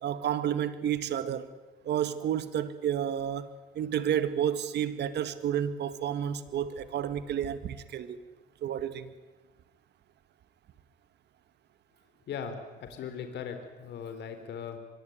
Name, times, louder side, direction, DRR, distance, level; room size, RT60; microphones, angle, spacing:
voice 1, 0.0-1.5 1.8-8.2 8.6-9.1, right 9 dB, 65° right, 2.0 m, -31 dB
voice 2, 12.3-14.8, left 7 dB, 70° left, 3.9 m, -39 dB
25.0 x 22.0 x 9.4 m
cardioid pair, 105°, 18 cm